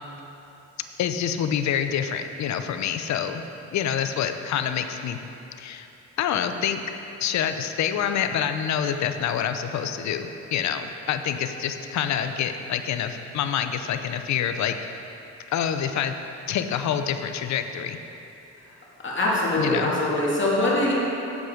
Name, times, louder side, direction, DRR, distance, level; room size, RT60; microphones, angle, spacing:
voice 1, 1.0-5.2 5.6-5.9 6.2-6.8 7.2-14.8 15.5-16.2 16.5-18.0 19.6-19.9, left 8 dB, 65° left, 8 dB, 0.6 m, -27 dB
voice 2, 19.0-20.9, left 1 dB, 40° left, -5 dB, 2.2 m, -23 dB
8.2 x 7.7 x 5.0 m, 3.0 s
cardioid pair, 90°, 30 cm